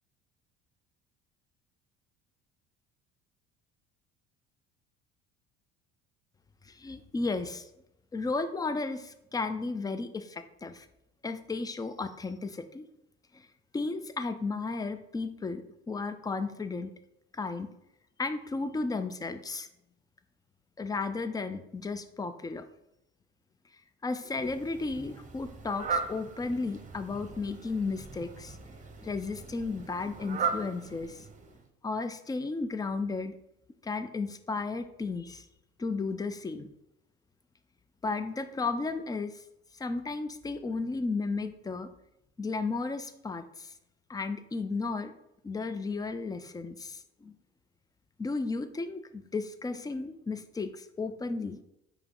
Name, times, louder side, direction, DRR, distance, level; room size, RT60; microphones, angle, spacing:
voice 1, 6.6-7.7 8.1-10.9 11.2-12.8 13.3-13.5 13.7-16.9 17.3-17.7 18.2-19.7 20.8-22.6 24.0-28.6 29.0-31.2 31.8-33.3 33.8-35.5 35.8-36.7 38.0-39.4 39.7-41.9 42.4-43.7 44.1-45.1 45.4-47.3 48.2-51.6, left 3 dB, 15° left, 10 dB, 0.4 m, -34 dB
Fowl, 24.3-31.7, right 5 dB, 25° right, 0.8 m, -38 dB
4.7 x 3.0 x 3.7 m, 0.83 s
hypercardioid pair, 70°, 31 cm